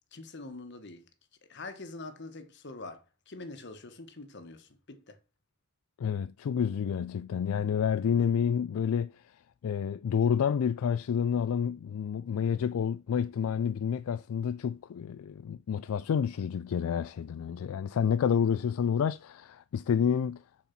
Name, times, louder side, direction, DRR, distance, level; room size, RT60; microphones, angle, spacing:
voice 1, 0.1-1.1 1.5-5.2 8.1-8.3, left 2 dB, 50° left, 1.2 m, -44 dB
voice 2, 6.0-9.1 9.6-20.4, left 7 dB, 70° left, 0.3 m, -29 dB
6.9 x 4.4 x 5.7 m
head